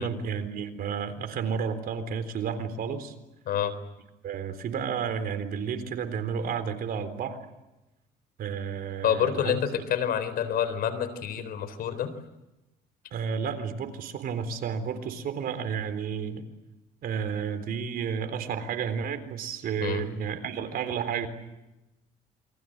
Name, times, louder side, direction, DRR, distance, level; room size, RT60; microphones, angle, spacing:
voice 1, 0.0-3.1 4.2-7.4 8.4-9.6 13.1-16.4 17.0-21.3, right 7 dB, 60° right, 9 dB, 3.9 m, -31 dB
voice 2, 9.0-12.1 19.8-20.0, left 9 dB, 65° left, 13 dB, 4.0 m, -28 dB
28.5 x 24.0 x 7.9 m, 0.98 s
cardioid pair, 110°, 17 cm